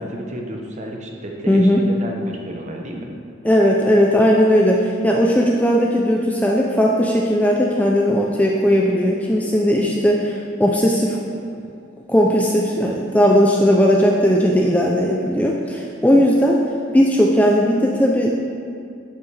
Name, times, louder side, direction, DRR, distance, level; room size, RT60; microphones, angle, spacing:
voice 1, 0.0-3.1, right 1 dB, 35° right, 0 dB, 0.9 m, -32 dB
voice 2, 1.5-1.8 3.4-11.2 12.1-16.6 16.9-18.3, equal, 5° left, -1 dB, 0.4 m, -17 dB
11.0 x 5.9 x 3.3 m, 2.4 s
head